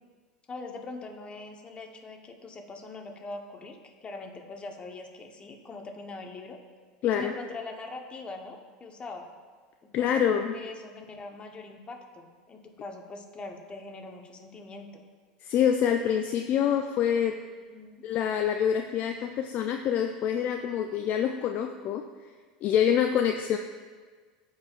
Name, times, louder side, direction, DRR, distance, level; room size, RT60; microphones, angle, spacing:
voice 1, 0.5-6.6 7.1-9.3 9.8-14.9 17.7-18.0, left 3 dB, 25° left, 3 dB, 1.0 m, -42 dB
voice 2, 7.0-7.3 9.9-10.5 15.4-17.3 18.0-22.0 22.6-23.6, left 9 dB, 45° left, 5 dB, 0.4 m, -26 dB
12.5 x 4.7 x 2.5 m, 1.5 s
hypercardioid pair, 95°, 4 cm